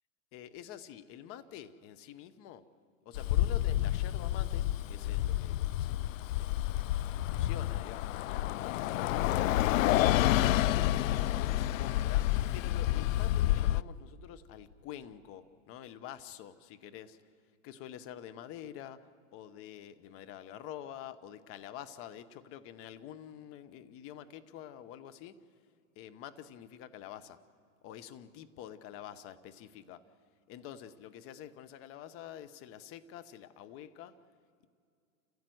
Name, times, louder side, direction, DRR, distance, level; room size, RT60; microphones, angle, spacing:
voice 1, 0.3-2.7 3.0-6.6 6.9-8.8 9.2-10.8 11.5-17.2 17.6-25.4 26.0-27.4 27.8-30.0 30.5-34.2, left 10 dB, 35° left, 12 dB, 1.1 m, -47 dB
Bus, 3.1-13.8, left 14 dB, 65° left, 0.5 m, -29 dB
29.0 x 15.5 x 7.9 m, 2.3 s
hypercardioid pair, 130°, 41 cm